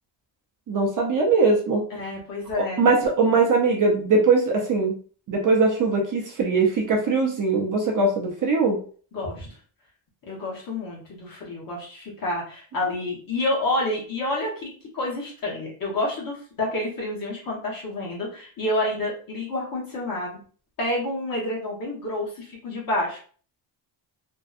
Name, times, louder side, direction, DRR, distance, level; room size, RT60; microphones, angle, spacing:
voice 1, 0.7-1.8 2.6-4.9 5.3-8.8, right 3 dB, 40° right, -1 dB, 0.4 m, -21 dB
voice 2, 1.9-2.9 9.1-9.5 10.3-20.3 20.8-23.2, left 1 dB, 45° left, -4 dB, 1.0 m, -29 dB
2.6 x 2.1 x 2.4 m, 0.44 s
cardioid pair, 165°, 50 cm